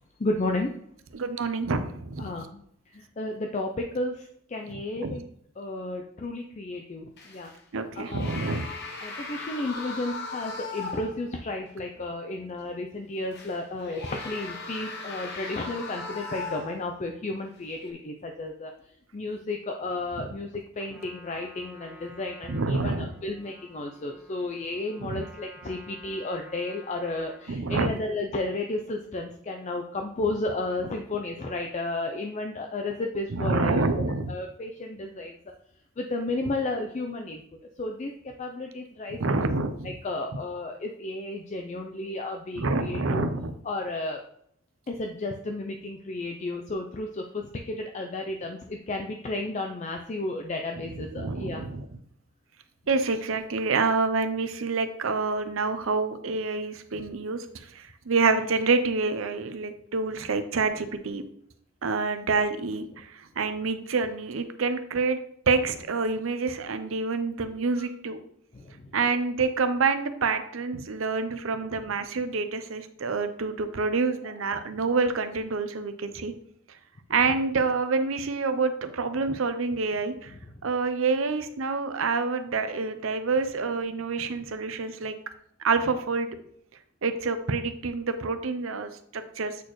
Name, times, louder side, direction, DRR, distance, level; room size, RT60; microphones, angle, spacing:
voice 1, 0.2-0.7 2.2-2.6 2.9-5.2 5.6-7.5 8.0-8.3 9.0-18.7 19.1-34.0 34.3-35.4 36.0-37.4 37.8-39.2 39.8-43.3 43.6-44.2 44.9-51.6 68.5-68.9 71.7-71.8, left 2 dB, 35° left, 3 dB, 0.5 m, -33 dB
voice 2, 1.1-2.3 5.0-5.2 7.7-8.7 20.2-20.3 22.5-23.1 25.0-25.2 27.5-27.9 33.3-34.3 39.2-39.9 42.6-43.5 50.9-51.9 52.9-61.2 61.8-65.2 65.5-68.2 68.9-76.3 77.1-80.3 80.6-85.1 85.6-86.3 87.0-89.6, right 4 dB, 70° right, 9 dB, 0.6 m, -27 dB
sound 1, 7.2-7.6 8.0-11.3 11.7-11.8 13.3-17.0 17.7-17.9, left 3 dB, 55° left, 1.0 m, -38 dB
Trumpet, 20.7-27.6, left 1 dB, 5° right, 1.0 m, -51 dB
8.1 x 4.3 x 3.1 m, 0.69 s
head